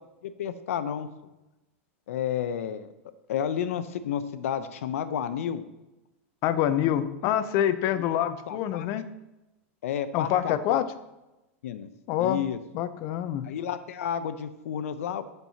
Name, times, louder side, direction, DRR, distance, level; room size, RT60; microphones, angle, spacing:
voice 1, 0.2-1.3 2.1-2.9 3.3-5.6 7.9-8.9 9.8-10.8 11.6-11.9 12.2-12.6 13.4-15.3, left 9 dB, 85° left, 12 dB, 0.6 m, -31 dB
voice 2, 6.4-9.1 10.1-10.9 12.1-12.4 12.7-13.4, left 11 dB, 45° left, 12 dB, 0.6 m, -26 dB
13.0 x 4.6 x 2.8 m, 0.99 s
supercardioid pair, 135°, 7 cm